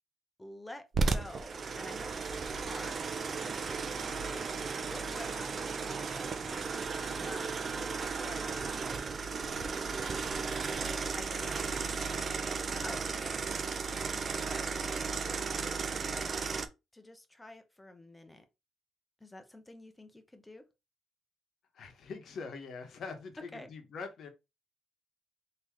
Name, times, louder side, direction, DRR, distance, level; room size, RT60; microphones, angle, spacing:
voice 1, 0.4-16.4 16.9-18.4 19.2-20.7 23.5-23.7, left 1 dB, 10° left, 0.8 m, -50 dB
sound 1, 0.9-16.7, right 4 dB, 45° right, 0.6 m, -35 dB
voice 2, 21.7-24.3, left 4 dB, 60° left, 1.0 m, -43 dB
3.5 x 2.9 x 3.0 m
cardioid pair, 90°, 0 cm